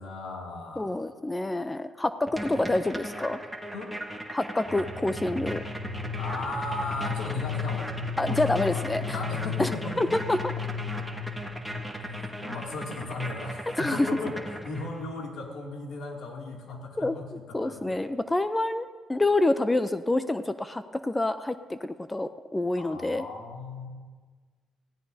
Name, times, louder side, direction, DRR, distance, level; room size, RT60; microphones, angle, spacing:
voice 1, 0.0-1.0 3.7-3.9 6.1-7.9 8.3-10.2 12.4-18.0 22.8-23.9, left 2 dB, 75° left, 0 dB, 2.5 m, -36 dB
voice 2, 0.8-3.4 4.3-5.6 8.2-9.1 9.6-9.7 10.0-10.5 13.8-14.1 17.0-17.2 17.5-23.2, left 2 dB, 15° left, 11 dB, 0.5 m, -27 dB
sound 1, 2.3-15.1, right 1 dB, ahead, 1.7 m, -38 dB
sound 2, 4.7-12.5, left 6 dB, 35° right, 1.2 m, -35 dB
17.0 x 16.5 x 2.8 m, 1.5 s
cardioid pair, 90°, 0 cm